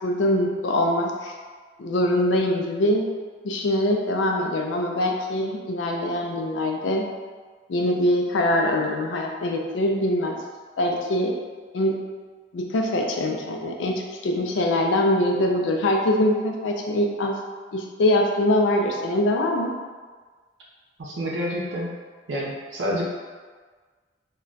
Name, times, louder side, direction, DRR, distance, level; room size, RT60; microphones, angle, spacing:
voice 1, 0.0-1.3 1.8-3.0 3.4-7.0 7.7-10.4 10.8-11.3 11.7-11.9 12.5-17.4 17.7-19.7, left 1 dB, 85° left, 1 dB, 0.4 m, -23 dB
voice 2, 21.0-21.9 22.3-23.0, equal, 85° right, -4 dB, 0.5 m, -28 dB
2.2 x 2.2 x 3.9 m, 1.5 s
head